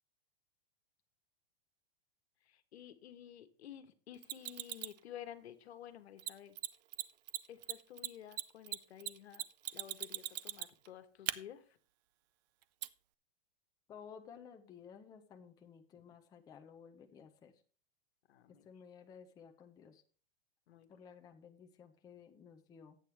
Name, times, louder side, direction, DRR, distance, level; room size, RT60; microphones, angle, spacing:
voice 1, 2.5-6.6 7.5-9.4 9.7-11.8 15.9-16.0 18.3-18.7 20.7-20.9, left 10 dB, 85° left, 10 dB, 1.3 m, -52 dB
Mechanisms, 4.2-5.0 6.2-6.3 6.6-6.7 6.9-7.0 7.3-10.9 11.3-11.4 12.8-12.9, right 14 dB, 45° right, 0.5 m, -39 dB
voice 2, 13.9-17.5 18.6-20.0 20.9-23.0, left 7 dB, 10° left, 4 dB, 0.6 m, -55 dB
11.0 x 8.5 x 3.4 m, 0.42 s
supercardioid pair, 155°, 31 cm